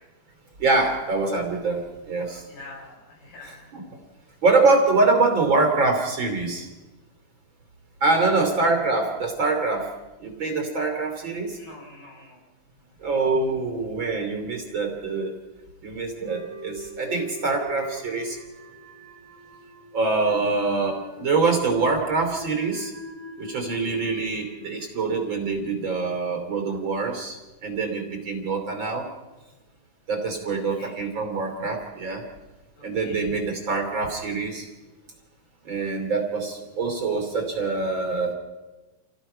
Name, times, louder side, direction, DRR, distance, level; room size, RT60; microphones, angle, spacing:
voice 1, 0.6-2.4 3.4-3.8 4.4-6.7 8.0-9.9 10.2-11.6 13.0-15.3 15.8-18.4 19.9-22.9 23.4-29.1 30.1-32.2 32.8-34.7 35.6-38.3, right 3 dB, 35° right, 3 dB, 3.4 m, -24 dB
voice 2, 2.5-3.7 8.2-8.4 11.2-12.4 23.7-24.1 30.5-31.1 32.8-33.3, left 2 dB, 75° left, -2 dB, 7.8 m, -46 dB
sound 1, 16.3-25.5, left 1 dB, 80° right, 5.1 m, -42 dB
28.0 x 17.5 x 5.6 m, 1.1 s
omnidirectional pair, 3.8 m